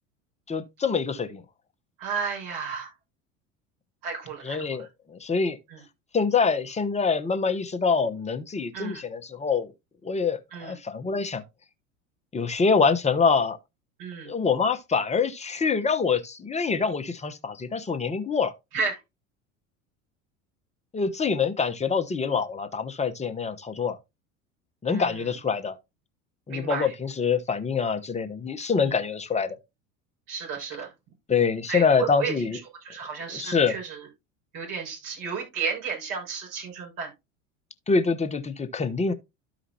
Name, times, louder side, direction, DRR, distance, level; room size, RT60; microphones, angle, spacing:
voice 1, 0.5-1.4 4.4-5.6 6.1-9.7 10.0-11.4 12.3-13.6 14.3-18.5 20.9-24.0 24.8-25.8 26.5-29.6 31.3-32.6 33.3-33.7 37.9-39.1, left 5 dB, 15° left, 1.1 m, -25 dB
voice 2, 2.0-2.9 4.0-4.9 5.7-5.8 8.7-9.0 10.5-10.7 14.0-14.3 18.7-19.0 24.9-25.2 26.5-26.9 28.8-28.9 30.3-30.9 31.7-34.1 34.5-37.1, right 5 dB, 55° right, 6.3 m, -33 dB
12.5 x 5.0 x 2.9 m
hypercardioid pair, 80°, 39 cm